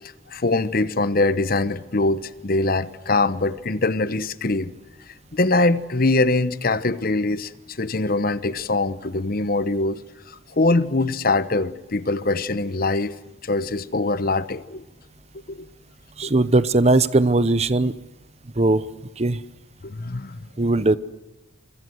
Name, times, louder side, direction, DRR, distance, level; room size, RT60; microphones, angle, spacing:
voice 1, 0.3-4.7 5.3-10.0 10.3-13.1 13.4-14.8 15.5-15.7 16.2-16.3 19.8-20.5, left 2 dB, 50° left, 0.9 m, -23 dB
voice 2, 16.2-17.9 18.6-18.8 19.2-19.4 20.6-21.0, right 2 dB, 35° right, 0.8 m, -19 dB
26.5 x 25.0 x 7.9 m
head